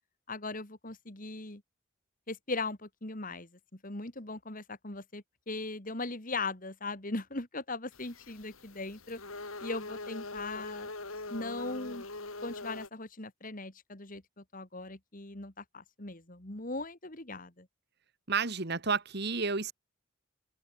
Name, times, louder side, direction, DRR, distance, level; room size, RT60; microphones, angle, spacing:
voice 1, 0.3-1.6 2.3-9.2 9.6-10.9 11.3-12.0 12.4-17.7, left 3 dB, 40° left, 2.6 m, -39 dB
sound 1, 7.9-12.9, left 2 dB, 85° left, 6.4 m, -42 dB
voice 2, 18.3-19.7, right 5 dB, 50° right, 1.8 m, -31 dB
open air
head